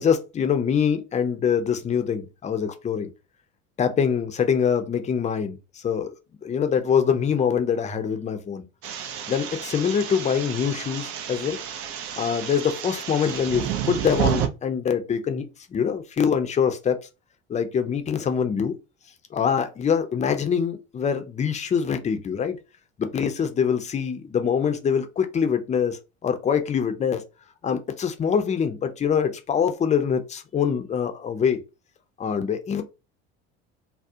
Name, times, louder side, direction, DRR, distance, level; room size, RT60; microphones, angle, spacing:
voice 1, 0.0-3.1 3.8-6.2 6.4-8.7 9.3-11.6 12.2-17.0 17.5-18.7 19.3-22.6 23.0-27.2 27.6-31.6 32.2-32.8, left 7 dB, 25° left, 0.5 m, -24 dB
sound 1, 8.8-14.5, right 9 dB, 45° right, 0.5 m, -30 dB
2.3 x 2.0 x 2.7 m
hypercardioid pair, 75°, 31 cm